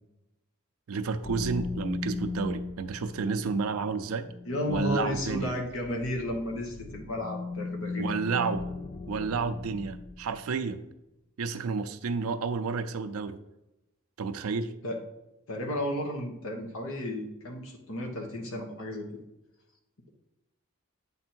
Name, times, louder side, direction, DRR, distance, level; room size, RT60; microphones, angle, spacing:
voice 1, 0.9-4.3 4.7-5.5 8.0-8.6 9.1-10.8 11.4-13.4 14.2-14.7, right 5 dB, 90° right, 8 dB, 0.4 m, -31 dB
sound 1, 1.2-10.4, left 3 dB, 30° left, 0.3 m, -38 dB
voice 2, 4.5-8.0 14.8-15.0 15.5-19.1, left 1 dB, 75° left, 2 dB, 1.2 m, -33 dB
8.2 x 3.5 x 4.5 m, 0.92 s
head